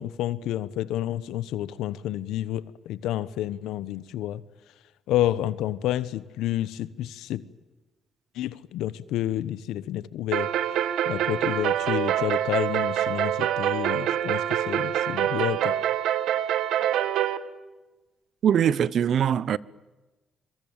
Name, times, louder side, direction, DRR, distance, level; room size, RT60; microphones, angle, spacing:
voice 1, 0.0-4.4 5.1-7.4 8.3-10.5 11.0-15.8, left 13 dB, 90° left, 1.1 m, -29 dB
sound 1, 10.3-17.4, right 11 dB, 85° right, 1.6 m, -25 dB
voice 2, 18.4-19.6, right 9 dB, 65° right, 0.8 m, -22 dB
25.5 x 23.5 x 8.9 m
cardioid pair, 90°, 0 cm